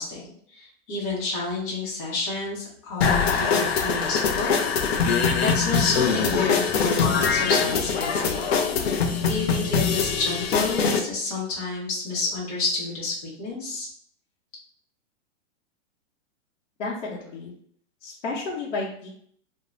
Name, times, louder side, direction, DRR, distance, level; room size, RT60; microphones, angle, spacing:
voice 1, 0.0-8.4 9.2-13.9, left 3 dB, 30° left, -5 dB, 0.8 m, -30 dB
sound 1, 3.0-11.0, left 5 dB, 55° left, 0.5 m, -23 dB
voice 2, 16.8-17.5 18.0-19.1, left 3 dB, 75° left, -7 dB, 0.9 m, -32 dB
2.5 x 2.1 x 3.1 m, 0.62 s
hypercardioid pair, 170°, 38 cm